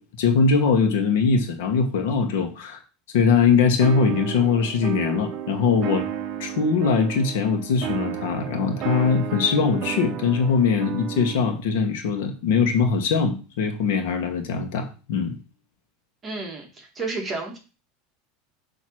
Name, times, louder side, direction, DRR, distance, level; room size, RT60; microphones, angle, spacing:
voice 1, 0.2-2.8 3.1-6.0 6.4-15.3, left 5 dB, 75° left, 4 dB, 1.2 m, -21 dB
sound 1, 3.8-11.6, right 10 dB, 40° right, 0.7 m, -32 dB
voice 2, 16.2-17.6, right 3 dB, 20° right, 1 dB, 1.4 m, -31 dB
7.5 x 2.9 x 6.1 m, 0.34 s
supercardioid pair, 150°, 0 cm